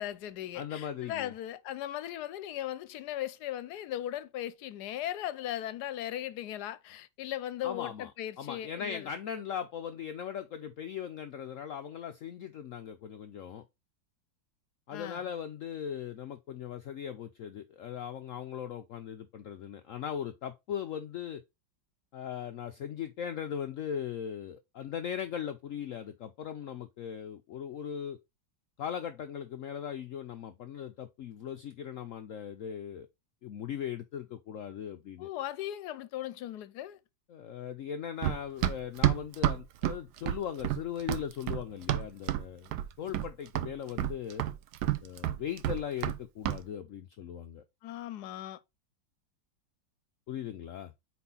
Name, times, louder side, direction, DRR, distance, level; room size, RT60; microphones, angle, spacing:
voice 1, 0.0-9.1 14.9-15.3 35.2-37.0 47.8-48.6, left 12 dB, 70° left, 1.0 m, -38 dB
voice 2, 0.5-1.3 7.6-8.1 8.4-13.6 14.9-21.4 22.1-28.2 28.8-33.1 33.4-35.3 37.3-42.7 43.0-44.4 45.0-47.6 50.3-50.9, left 9 dB, 85° left, 0.7 m, -39 dB
Run, 38.2-42.5 42.7-43.3 43.6-46.2 46.4-46.6, right 13 dB, 70° right, 1.1 m, -29 dB
4.6 x 4.2 x 5.4 m
omnidirectional pair, 2.0 m